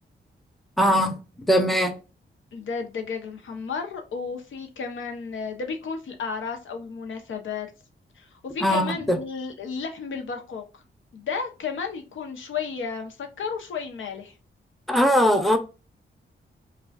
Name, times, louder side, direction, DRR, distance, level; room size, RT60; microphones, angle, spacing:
voice 1, 0.8-2.0 8.6-9.2 14.9-15.6, equal, ahead, 6 dB, 0.6 m, -21 dB
voice 2, 2.5-7.7 8.2-10.6 11.1-14.3, left 5 dB, 90° left, 4 dB, 0.8 m, -33 dB
4.9 x 2.3 x 2.3 m, 0.31 s
wide cardioid pair, 120°, 20 cm